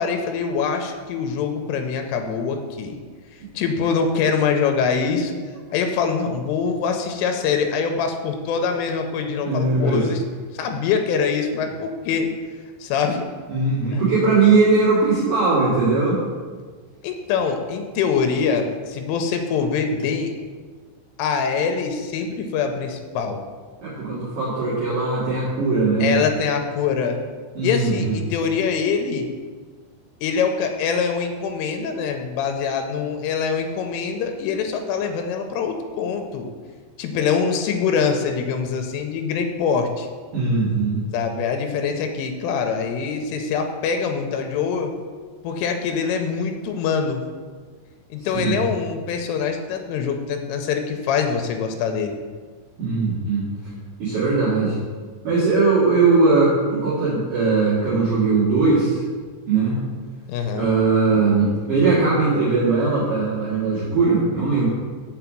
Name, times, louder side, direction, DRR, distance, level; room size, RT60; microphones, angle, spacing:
voice 1, 0.0-3.0 3.5-5.4 5.7-10.2 10.5-12.3 12.8-13.3 13.9-14.0 17.0-20.3 21.2-23.4 26.0-27.2 27.6-29.3 30.2-36.5 37.0-40.1 41.1-44.9 45.4-47.2 48.1-52.2 60.3-60.7, left 6 dB, 90° left, 5 dB, 3.2 m, -24 dB
voice 2, 9.4-10.1 13.5-16.2 23.8-26.2 27.5-28.2 40.3-41.0 48.3-48.6 52.8-53.7 54.0-54.8 55.2-59.0 59.5-59.8 60.5-64.7, right 3 dB, 50° right, -9 dB, 3.0 m, -19 dB
6.9 x 5.7 x 7.4 m, 1.5 s
omnidirectional pair, 5.7 m